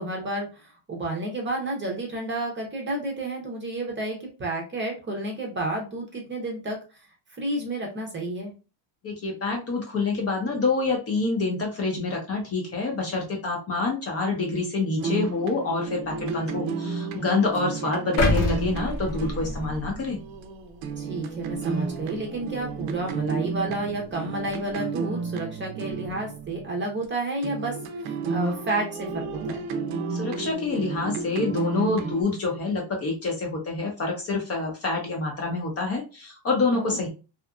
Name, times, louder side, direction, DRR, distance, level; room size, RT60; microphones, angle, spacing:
voice 1, 0.0-6.8 7.3-8.5 17.8-17.9 21.0-27.8 28.0-29.6 36.7-37.1, right 2 dB, 25° right, 0 dB, 0.6 m, -31 dB
voice 2, 9.0-20.2 30.1-37.1, left 3 dB, 30° left, 1 dB, 0.6 m, -27 dB
sound 1, 15.0-27.0 27.4-32.2, right 4 dB, 75° right, 0.6 m, -33 dB
sound 2, 18.2-20.3 20.8-21.0, left 2 dB, 55° left, 0.9 m, -26 dB
2.8 x 2.4 x 2.3 m, 0.32 s
cardioid pair, 150°, 49 cm